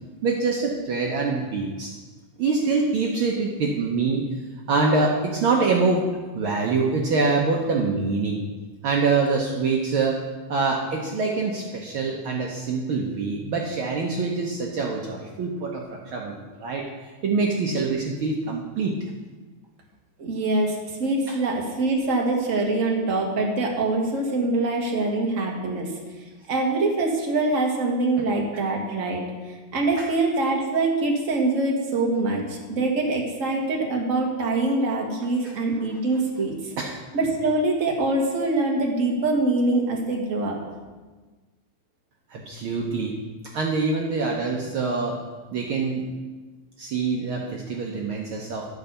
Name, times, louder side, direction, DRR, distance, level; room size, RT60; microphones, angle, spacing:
voice 1, 0.2-1.9 2.4-4.2 4.7-6.0 6.3-8.4 8.8-10.2 10.5-16.8 17.2-18.9 21.3-21.4 30.0-30.1 36.8-36.9 42.3-43.1 43.5-45.2 45.5-46.0 46.8-48.7, right 4 dB, 80° right, -1 dB, 1.1 m, -25 dB
voice 2, 20.2-25.9 26.5-36.7 37.1-40.6, right 2 dB, 40° right, -1 dB, 1.1 m, -24 dB
12.5 x 4.7 x 6.8 m, 1.3 s
omnidirectional pair, 3.6 m